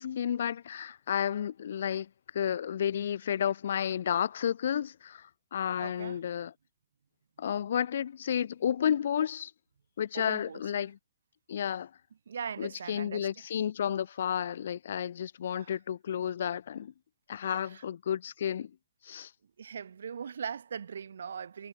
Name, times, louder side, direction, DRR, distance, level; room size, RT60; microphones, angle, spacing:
voice 1, 0.0-6.5 7.4-9.5 10.0-11.0 11.5-11.9 12.6-16.9 17.3-18.7 19.0-19.3, left 9 dB, 65° left, 0.3 m, -32 dB
voice 2, 5.8-6.2 10.1-10.6 12.3-13.3 15.6-15.7 17.4-17.8 19.6-21.7, right 7 dB, 80° right, 0.6 m, -40 dB
hypercardioid pair, 160°, 0 cm